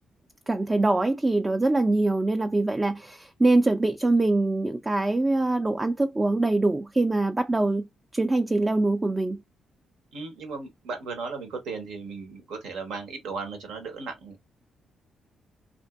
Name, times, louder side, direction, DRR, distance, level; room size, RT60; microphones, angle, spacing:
voice 1, 0.5-7.9 8.1-9.4, right 2 dB, 20° right, 0.3 m, -23 dB
voice 2, 10.1-14.4, right 4 dB, 80° right, 0.9 m, -36 dB
2.6 x 2.5 x 2.3 m
supercardioid pair, 60°, 0 cm